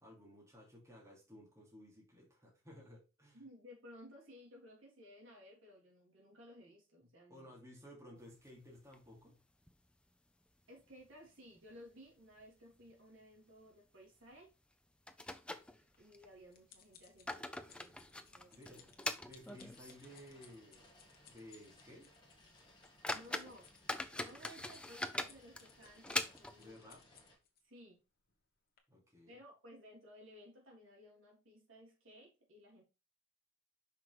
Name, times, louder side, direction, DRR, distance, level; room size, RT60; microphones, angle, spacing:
voice 1, 0.0-3.4 7.3-9.4 18.5-18.9 19.2-21.0 21.3-22.1 26.6-27.0 28.9-29.3, equal, 15° right, -3 dB, 2.7 m, -56 dB
voice 2, 3.3-7.6 10.7-14.5 16.0-18.0 18.3-18.8 23.1-23.7 24.1-26.8 27.6-28.0 29.3-32.8, equal, 70° right, -2 dB, 3.3 m, -58 dB
sound 1, 8.3-9.3 9.6-9.7 10.1-10.2 10.8-11.3 11.6-11.7 12.3-12.5 12.8-13.0 14.3-14.4 15.1-16.3 16.9-20.1 20.5-20.6 21.1-21.2 21.7-21.8 22.4-22.5 22.8-26.7, left 1 dB, 5° left, 0.5 m, -43 dB
sound 2, 15.9-27.6 28.2-28.4 28.8-28.9, left 7 dB, 45° left, 1.2 m, -64 dB
sound 3, 17.7-27.3, left 1 dB, 20° left, 1.7 m, -65 dB
5.8 x 4.8 x 4.6 m, 0.30 s
head